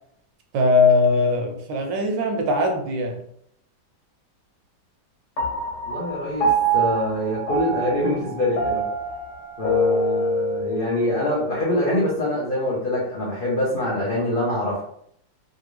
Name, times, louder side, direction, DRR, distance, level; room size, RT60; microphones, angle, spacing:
voice 1, 0.5-3.2, left 3 dB, 80° right, 4 dB, 1.3 m, -20 dB
Piano, 5.4-12.1, right 2 dB, 65° left, 1.2 m, -25 dB
voice 2, 5.9-8.8 9.6-14.8, left 1 dB, 80° left, -6 dB, 0.4 m, -25 dB
3.3 x 2.5 x 3.0 m, 0.70 s
omnidirectional pair, 2.0 m